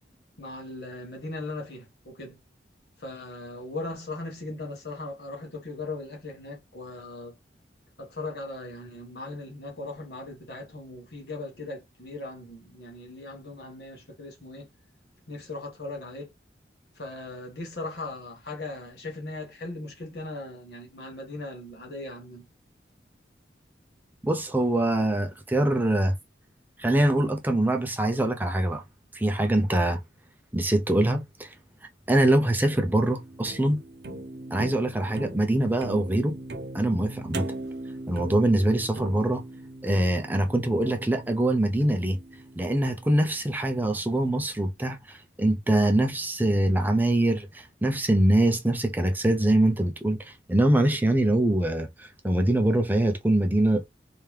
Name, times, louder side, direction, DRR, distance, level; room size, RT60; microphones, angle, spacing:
voice 1, 0.4-2.4 3.0-7.3 8.0-14.7 15.3-16.3 16.9-22.5, left 2 dB, 65° left, 1.5 m, -38 dB
voice 2, 24.2-26.2 26.8-28.8 29.1-30.0 30.5-31.5 32.1-33.8 34.5-36.3 36.7-37.5 38.1-39.4 39.8-42.2 42.6-53.9, right 1 dB, 10° right, 0.5 m, -24 dB
sound 1, 32.2-43.4, right 2 dB, 60° right, 0.6 m, -40 dB
3.3 x 3.2 x 3.2 m
head